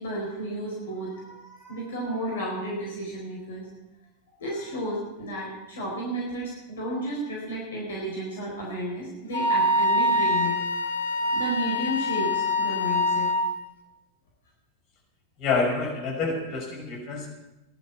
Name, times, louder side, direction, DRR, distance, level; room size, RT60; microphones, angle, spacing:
voice 1, 0.0-3.7 4.4-10.6 11.3-13.3, right 1 dB, 60° left, -2 dB, 4.5 m, -32 dB
Wind instrument woodwind instrument, 9.3-13.5, left 1 dB, 80° left, 2.8 m, -24 dB
voice 2, 15.4-17.3, left 4 dB, 40° left, -1 dB, 6.0 m, -27 dB
17.5 x 11.5 x 6.0 m, 0.96 s
figure-of-eight pair, 90°, 0 cm